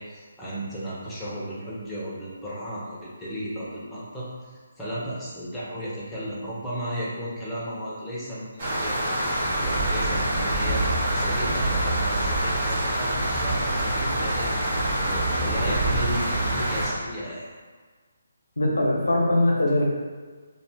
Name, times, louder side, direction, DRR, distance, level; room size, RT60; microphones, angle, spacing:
voice 1, 0.0-10.8 11.1-17.5, equal, 5° left, -9 dB, 0.7 m, -35 dB
sound 1, 8.6-16.9, right 1 dB, 45° right, 0.9 m, -25 dB
voice 2, 18.6-19.9, left 1 dB, 90° left, -2 dB, 0.7 m, -21 dB
2.5 x 2.4 x 3.4 m, 1.4 s
figure-of-eight pair, 155°, 0 cm